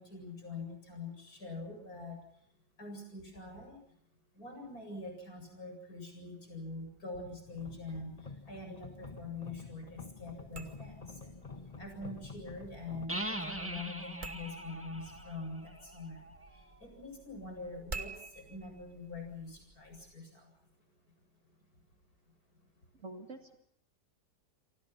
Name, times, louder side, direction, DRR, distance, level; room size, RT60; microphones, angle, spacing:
voice 1, 0.0-2.2 2.8-3.8 4.4-8.1 8.5-11.3 11.8-16.2 16.8-20.4, left 3 dB, 60° left, 4 dB, 8.5 m, -44 dB
sound 1, 7.5-13.1, left 4 dB, 25° left, 1.7 m, -49 dB
sound 2, 10.4-20.1, right 4 dB, 30° right, 1.5 m, -51 dB
sound 3, 13.1-16.7, right 1 dB, 10° right, 1.7 m, -41 dB
voice 2, 22.9-23.6, right 2 dB, 45° right, 5 dB, 2.3 m, -47 dB
29.5 x 24.0 x 5.9 m, 0.66 s
omnidirectional pair, 1.8 m